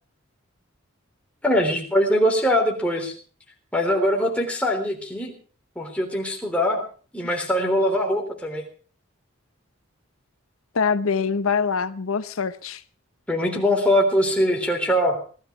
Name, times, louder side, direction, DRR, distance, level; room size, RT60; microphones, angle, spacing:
voice 1, 1.4-3.1 3.7-5.3 5.8-6.8 7.1-8.6 13.3-15.2, equal, 5° left, 3.5 m, -22 dB
voice 2, 10.7-12.8, left 5 dB, 80° left, 0.7 m, -24 dB
19.0 x 13.0 x 4.8 m
head